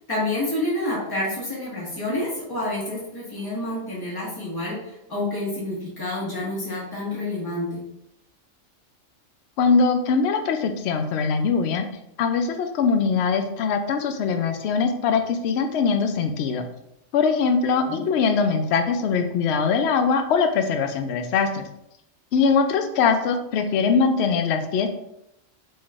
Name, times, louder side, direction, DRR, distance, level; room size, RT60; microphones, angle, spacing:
voice 1, 0.1-7.8 17.9-18.1, left 1 dB, 15° left, -7 dB, 1.6 m, -28 dB
voice 2, 9.6-11.9 12.2-16.6 17.1-21.7 22.3-24.9, left 5 dB, 65° left, 7 dB, 0.8 m, -22 dB
5.1 x 3.6 x 2.4 m, 0.82 s
omnidirectional pair, 1.3 m